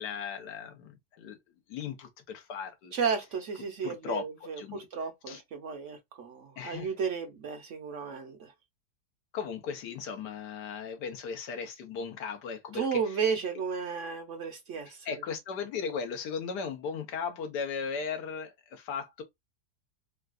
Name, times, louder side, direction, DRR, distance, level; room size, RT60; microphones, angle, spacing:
voice 1, 0.0-1.4 1.7-2.9 3.8-4.9 5.3-5.4 6.6-6.9 9.3-13.2 14.9-19.2, left 6 dB, 85° left, 1.5 m, -37 dB
voice 2, 2.9-8.5 12.7-15.1, right 6 dB, 60° right, 0.9 m, -33 dB
3.8 x 2.3 x 2.4 m
omnidirectional pair, 1.7 m